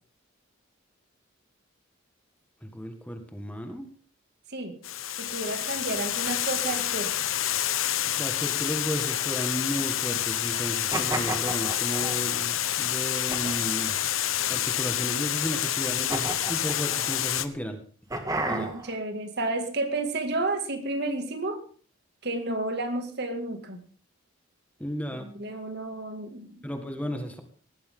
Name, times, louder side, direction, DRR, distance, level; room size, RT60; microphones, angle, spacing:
voice 1, 2.6-3.9 8.1-14.0 14.5-17.8 18.4-18.7 24.8-25.3 26.6-27.4, equal, 5° left, 5 dB, 1.7 m, -34 dB
Water, 4.8-17.5, left 11 dB, 80° left, 1.1 m, -28 dB
voice 2, 5.2-7.1 18.5-21.6 22.2-23.8 25.1-26.6, right 2 dB, 55° right, 6 dB, 2.3 m, -31 dB
sound 1, 10.9-12.4 13.3-13.9 14.5-15.2 16.1-17.2 18.1-19.0, right 2 dB, 15° right, 2.1 m, -33 dB
19.0 x 14.5 x 3.8 m, 0.41 s
head